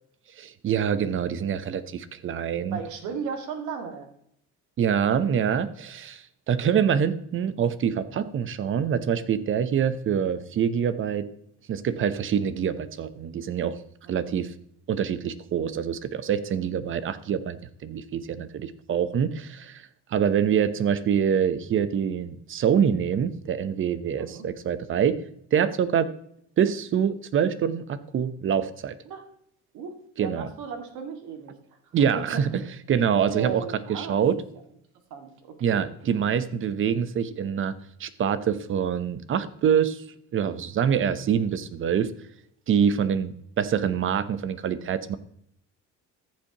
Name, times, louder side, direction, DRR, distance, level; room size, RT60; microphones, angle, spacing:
voice 1, 0.4-2.8 4.8-11.3 11.7-13.8 14.1-14.5 14.9-17.6 17.8-25.2 25.5-26.1 26.6-28.9 30.2-30.5 31.9-32.6 32.9-33.6 33.9-34.4 35.6-37.7 38.0-40.0 40.3-42.1 42.7-45.2, right 8 dB, 40° right, 14 dB, 0.8 m, -25 dB
voice 2, 2.7-4.1 14.2-14.3 24.1-24.4 29.1-29.2 29.7-31.6 32.2-32.4 33.1-34.2 35.1-35.9, right 6 dB, 75° right, 6 dB, 2.0 m, -35 dB
14.5 x 7.3 x 2.9 m, 0.70 s
cardioid pair, 115°, 30 cm